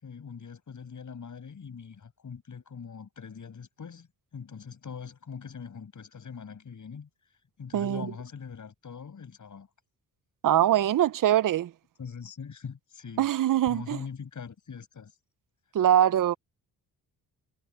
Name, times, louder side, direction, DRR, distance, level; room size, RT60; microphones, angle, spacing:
voice 1, 0.0-7.1 7.6-9.7 12.0-13.3 13.7-15.1, left 6 dB, 50° left, 7.5 m, -42 dB
voice 2, 7.7-8.1 10.4-11.7 13.2-14.0 15.7-16.3, right 11 dB, 55° right, 0.7 m, -23 dB
cardioid pair, 90°, 38 cm